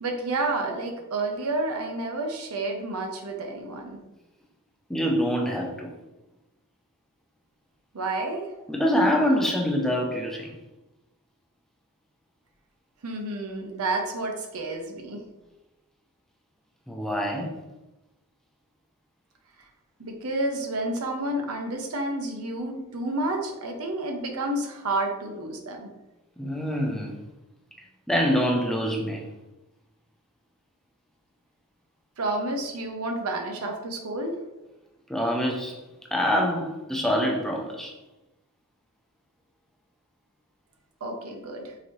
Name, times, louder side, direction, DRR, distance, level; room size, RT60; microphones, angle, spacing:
voice 1, 0.0-4.0 7.9-8.4 13.0-15.2 20.0-25.9 32.2-34.3 41.0-41.7, right 2 dB, 75° right, 3 dB, 0.7 m, -30 dB
voice 2, 4.9-5.9 8.7-10.5 16.9-17.5 26.4-27.2 28.1-29.3 35.1-35.8 36.1-37.9, equal, ahead, 0 dB, 0.4 m, -25 dB
3.9 x 2.7 x 3.0 m, 1.0 s
head